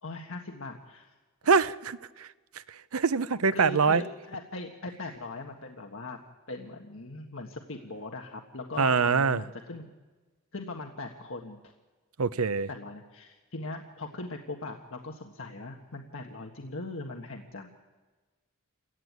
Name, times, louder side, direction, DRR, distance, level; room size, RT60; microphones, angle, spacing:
voice 1, 0.0-1.1 1.4-1.6 3.5-6.2 6.5-9.9 10.5-11.6 12.7-17.7, left 2 dB, 65° left, 2 dB, 1.5 m, -40 dB
voice 2, 1.5-2.3 2.7-4.0 8.8-9.4 12.2-12.7, right 5 dB, 85° right, 15 dB, 0.7 m, -24 dB
28.0 x 15.5 x 9.5 m, 1.3 s
head